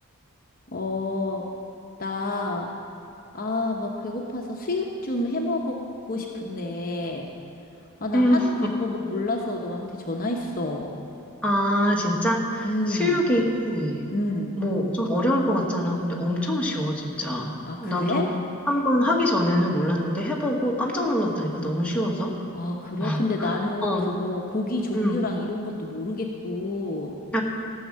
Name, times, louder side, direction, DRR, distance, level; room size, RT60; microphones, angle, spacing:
voice 1, 0.7-1.5 2.0-2.7 3.3-5.8 6.1-7.3 8.0-10.9 12.6-13.2 14.1-14.5 17.7-18.2 20.5-20.6 22.5-27.2, left 2 dB, 40° left, 0 dB, 0.9 m, -29 dB
voice 2, 8.1-8.5 11.4-14.0 14.6-18.3 18.7-22.3 23.0-23.5 23.8-24.1 24.9-25.2 27.3-27.4, equal, 5° left, -3 dB, 1.3 m, -24 dB
14.5 x 6.5 x 7.4 m, 2.7 s
head